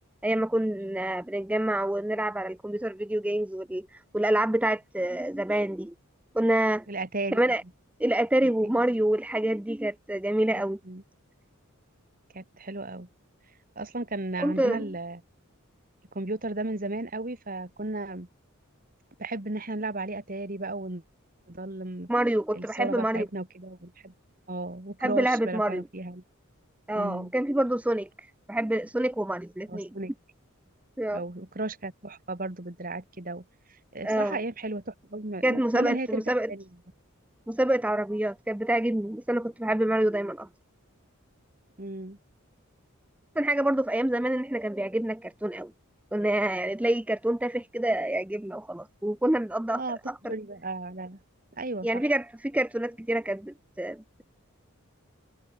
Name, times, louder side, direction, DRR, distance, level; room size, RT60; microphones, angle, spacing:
voice 1, 0.2-5.9 6.3-6.9 7.3-7.6 8.0-10.8 14.4-14.9 22.1-23.3 25.0-25.8 26.9-29.9 31.0-31.2 34.0-34.4 35.4-36.5 37.5-40.5 43.4-45.7 46.1-50.3 51.8-54.2, right 1 dB, 5° right, 0.4 m, -27 dB
voice 2, 6.9-7.4 8.6-8.8 10.6-11.0 12.3-13.1 13.8-15.2 16.1-18.3 19.2-21.0 21.5-22.1 22.5-24.1 24.5-26.2 26.9-27.3 29.7-30.1 31.1-33.5 33.9-36.2 36.5-36.6 41.8-42.2 49.8-50.0 50.3-51.2 51.6-52.0, right 2 dB, 40° right, 1.9 m, -34 dB
head